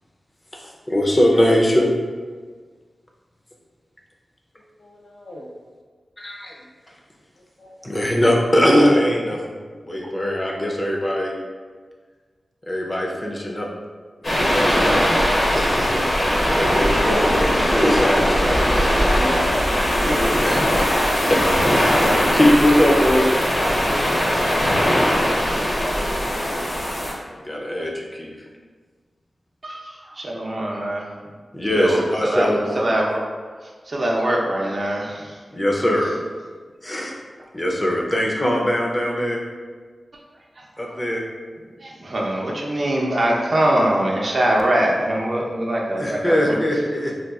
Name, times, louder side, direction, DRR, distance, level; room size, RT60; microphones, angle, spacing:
voice 1, 0.5-1.9 6.2-6.6 7.8-9.4 9.8-11.4 12.7-13.7 14.4-16.1 16.4-18.6 20.4-20.7 21.2-21.4 22.3-23.2 27.4-28.3 31.5-32.9 35.5-36.1 36.8-37.1 37.5-39.4 40.8-41.2 46.0-47.1, equal, 25° left, -1 dB, 0.6 m, -21 dB
voice 2, 4.8-5.5 7.6-7.8 19.0-19.7 20.0-20.5 23.9-24.3, left 1 dB, 85° left, -3 dB, 0.6 m, -30 dB
sound 1, 14.2-27.1, equal, 50° left, 0.8 m, -19 dB
voice 3, 29.6-31.1 31.7-33.2 33.9-35.4 40.8-41.0 41.8-46.3, right 1 dB, 45° right, -2 dB, 0.5 m, -23 dB
3.9 x 2.4 x 2.3 m, 1.5 s
wide cardioid pair, 75°, 0 cm